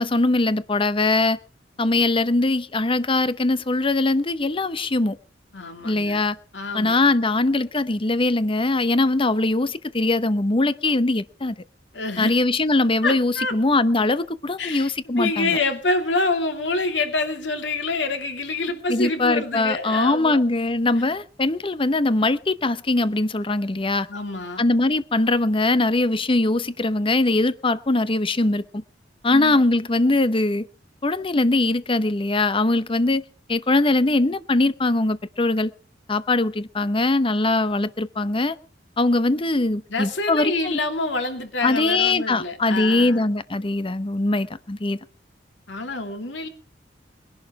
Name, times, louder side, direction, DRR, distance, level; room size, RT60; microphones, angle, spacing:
voice 1, 0.0-1.4 1.8-5.2 5.8-6.4 6.7-11.5 12.2-15.6 18.9-24.1 24.6-28.8 29.2-30.7 31.0-33.2 33.5-35.7 36.1-38.6 39.0-40.8 41.6-45.0, left 2 dB, 30° left, 14 dB, 0.8 m, -21 dB
voice 2, 5.5-6.2 6.5-7.1 11.9-12.3 13.0-13.5 14.6-14.9 15.2-20.4 24.1-24.6 29.3-29.6 39.9-43.2 45.7-46.5, left 3 dB, 80° left, 6 dB, 2.8 m, -27 dB
20.5 x 11.5 x 4.8 m, 0.39 s
head